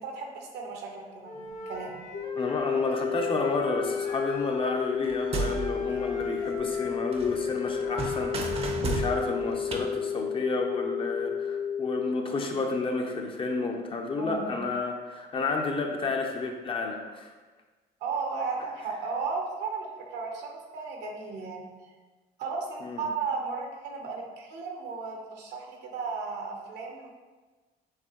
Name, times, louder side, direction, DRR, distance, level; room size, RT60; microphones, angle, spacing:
voice 1, 0.0-2.0 14.2-14.5 18.0-21.9 22.4-27.1, right 4 dB, 80° right, 1 dB, 0.9 m, -35 dB
Wind instrument woodwind instrument, 1.2-8.7, left 1 dB, 55° left, 1.3 m, -44 dB
sound 1, 2.1-12.1, left 7 dB, 75° left, 1.0 m, -32 dB
voice 2, 2.4-17.3 22.8-23.0, left 3 dB, 30° left, 3 dB, 0.6 m, -31 dB
sound 2, 5.0-6.9 7.1-9.8, right 4 dB, 35° right, 0.6 m, -34 dB
6.5 x 2.7 x 3.0 m, 1.3 s
cardioid pair, 110°, 17 cm